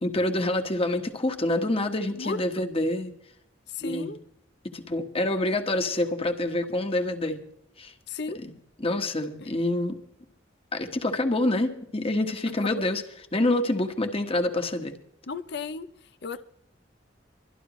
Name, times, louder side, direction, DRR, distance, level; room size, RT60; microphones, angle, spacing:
voice 1, 0.0-3.1 3.8-4.2 4.6-7.4 7.8-7.9 8.8-10.0 10.7-13.0 13.3-14.9, left 1 dB, 30° left, 6 dB, 1.5 m, -27 dB
voice 2, 2.1-2.6 3.7-4.2 8.1-8.4 9.4-9.5 12.6-12.8 15.3-16.4, left 4 dB, 65° left, 12 dB, 0.7 m, -35 dB
24.5 x 11.0 x 3.1 m, 0.75 s
head